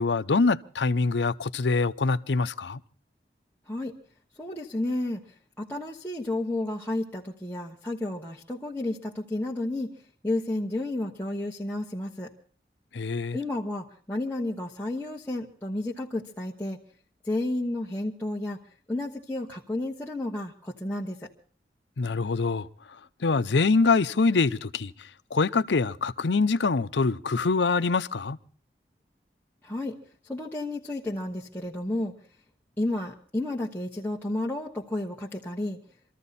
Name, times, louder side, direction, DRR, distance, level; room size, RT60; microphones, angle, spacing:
voice 1, 0.0-2.8 12.9-13.4 22.0-22.7 23.2-24.9 25.3-28.4, left 4 dB, 90° left, 0.7 m, -24 dB
voice 2, 4.3-9.9 10.2-12.3 13.3-16.8 17.2-18.6 18.9-21.3 29.6-30.0 30.2-32.1 32.8-35.8, left 1 dB, 10° left, 1.2 m, -31 dB
24.5 x 14.0 x 4.1 m
head